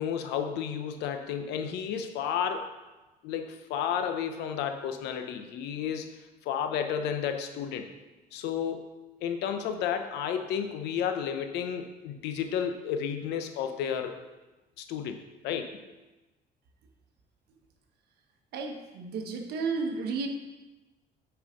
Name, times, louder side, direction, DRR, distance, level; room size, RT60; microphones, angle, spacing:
voice 1, 0.0-2.7 3.2-6.1 6.4-7.9 8.3-8.9 9.2-14.2 14.8-15.8, left 8 dB, 85° left, 7 dB, 0.9 m, -32 dB
voice 2, 18.5-20.3, right 4 dB, 75° right, 3 dB, 1.4 m, -32 dB
8.9 x 4.9 x 5.2 m, 1.1 s
cardioid pair, 110°, 17 cm